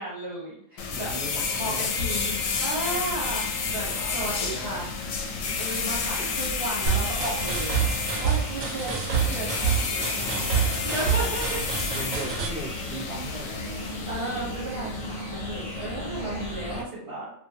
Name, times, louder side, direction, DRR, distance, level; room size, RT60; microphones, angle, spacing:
voice 1, 0.0-1.1 1.5-4.9 5.6-11.6 14.1-17.3, right 1 dB, 50° right, -7 dB, 1.1 m, -34 dB
sound 1, 0.8-16.8, left 4 dB, 85° left, 1.0 m, -31 dB
voice 2, 0.9-1.9 3.8-4.9 5.5-5.6 6.2-6.3 10.2-11.3 11.9-13.6 16.7-16.9, right 1 dB, 30° right, -6 dB, 1.2 m, -39 dB
sound 2, 3.1-16.8, left 1 dB, 60° left, 1.3 m, -41 dB
sound 3, 6.9-12.5, right 7 dB, 80° right, 1.0 m, -27 dB
2.5 x 2.5 x 2.7 m, 0.72 s
omnidirectional pair, 1.4 m